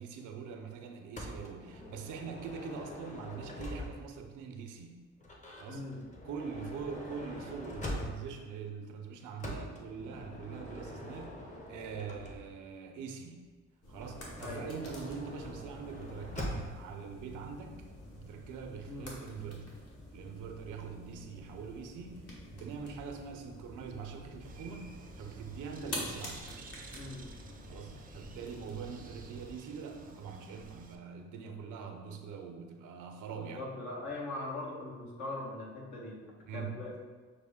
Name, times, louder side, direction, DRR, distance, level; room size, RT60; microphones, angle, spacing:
voice 1, 0.0-5.0 5.6-5.8 6.2-11.3 11.7-13.4 13.9-17.9 18.1-19.7 20.1-22.2 22.5-24.9 25.2-26.5 27.7-33.7 36.5-36.7, right 6 dB, 85° right, 4 dB, 0.6 m, -43 dB
Motor vehicle (road) / Sliding door, 1.2-4.2 5.2-8.5 9.4-12.7 13.9-16.9, left 1 dB, 25° left, 0.8 m, -44 dB
voice 2, 5.7-6.0 14.4-14.7 18.8-19.1 26.9-27.2 33.3-36.2 36.5-36.9, left 2 dB, 70° left, -4 dB, 1.3 m, -41 dB
sound 1, 13.8-29.5, left 1 dB, 55° left, 1.3 m, -48 dB
Bird, 24.4-31.0, right 4 dB, 30° right, 0.4 m, -52 dB
6.2 x 2.1 x 3.5 m, 1.4 s
cardioid pair, 90°, 30 cm